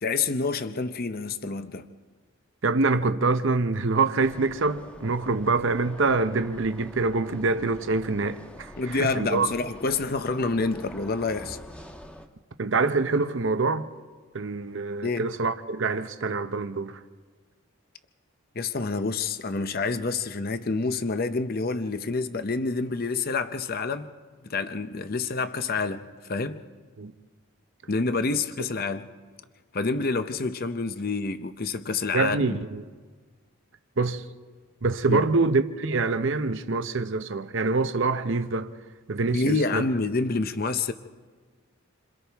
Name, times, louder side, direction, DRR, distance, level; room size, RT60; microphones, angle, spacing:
voice 1, 0.0-1.9 8.8-11.6 15.0-15.3 18.6-24.1 24.4-26.6 27.9-29.1 29.7-32.6 35.1-35.3 39.3-40.9, left 3 dB, 45° left, 0.7 m, -28 dB
voice 2, 2.6-9.5 12.6-13.9 14.3-17.0 27.0-27.1 32.1-32.8 34.0-34.2 34.8-38.7 39.1-39.8, right 3 dB, 55° right, 0.7 m, -25 dB
sound 1, 4.2-12.3, equal, 5° left, 1.1 m, -45 dB
28.0 x 26.5 x 3.5 m
head